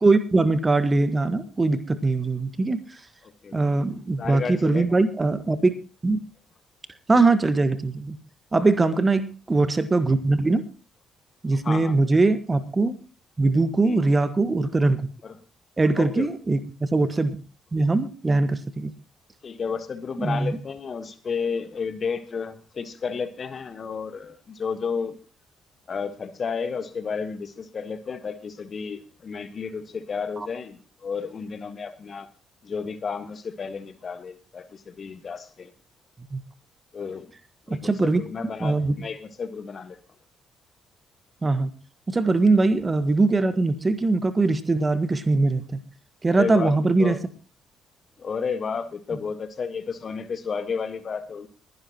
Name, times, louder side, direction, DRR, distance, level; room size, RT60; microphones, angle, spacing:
voice 1, 0.0-2.8 3.5-5.7 6.0-6.2 7.1-8.2 8.5-10.6 11.4-12.9 13.4-15.1 15.8-16.6 16.9-17.4 17.7-18.9 20.2-20.6 36.3-36.4 37.7-38.2 38.6-39.0 41.4-41.7 42.1-45.6 46.2-47.1, right 3 dB, 25° right, 12 dB, 1.5 m, -21 dB
voice 2, 3.2-3.6 4.2-4.9 8.6-8.9 11.6-12.0 13.8-14.0 15.2-15.4 16.0-16.3 19.4-25.2 25.9-32.3 32.6-35.7 36.9-37.3 37.7-40.0 46.3-47.2 48.2-51.5, left 5 dB, 45° left, 11 dB, 1.5 m, -32 dB
21.5 x 11.0 x 3.0 m, 0.35 s
figure-of-eight pair, 40°, 0 cm